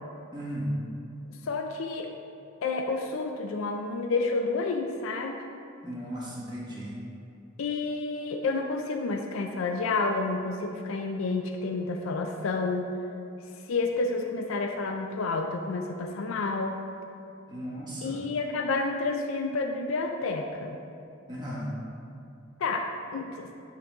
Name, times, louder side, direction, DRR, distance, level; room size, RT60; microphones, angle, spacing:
voice 1, 0.3-0.7 5.8-6.9 17.5-18.2 21.3-21.6, equal, 20° right, -7 dB, 1.4 m, -36 dB
voice 2, 1.4-2.1 2.6-5.4 7.6-12.9 13.7-16.8 18.0-20.8 22.6-22.9 23.1-23.5, left 3 dB, 85° left, 4 dB, 0.4 m, -30 dB
9.4 x 3.9 x 3.5 m, 2.6 s
head